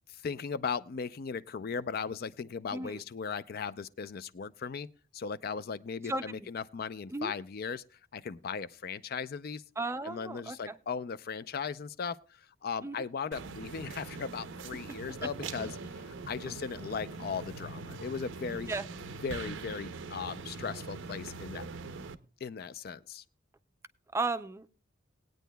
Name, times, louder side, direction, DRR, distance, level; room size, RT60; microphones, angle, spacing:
voice 1, 0.1-4.9 5.1-7.8 8.1-9.6 10.0-18.7 19.2-21.6 22.4-23.2, left 6 dB, 50° left, 0.4 m, -37 dB
voice 2, 2.7-3.0 6.0-6.5 7.1-7.3 9.8-10.8 12.8-13.0 15.2-15.3 15.6-15.7 16.5-16.6 18.7-18.9 24.1-24.7, right 3 dB, 15° right, 0.4 m, -35 dB
sound 1, 13.3-22.2, right 4 dB, 70° right, 0.6 m, -42 dB
19.5 x 9.1 x 2.2 m
head